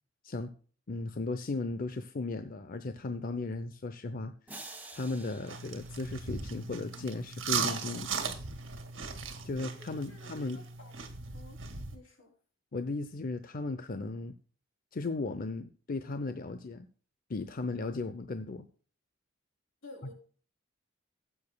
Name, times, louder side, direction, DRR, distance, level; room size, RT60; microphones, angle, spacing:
voice 1, 0.9-4.3 4.9-8.4 9.4-10.6 12.7-14.3 14.9-16.9 17.3-18.7, left 3 dB, 50° left, 0.6 m, -36 dB
sound 1, 4.5-6.8, right 2 dB, 10° right, 1.4 m, -49 dB
sound 2, 5.5-12.0, right 6 dB, 80° right, 1.9 m, -38 dB
voice 2, 9.6-10.9 11.3-11.6 11.9-12.3 19.8-20.1, left 2 dB, 80° left, 3.2 m, -52 dB
15.5 x 8.6 x 2.3 m
head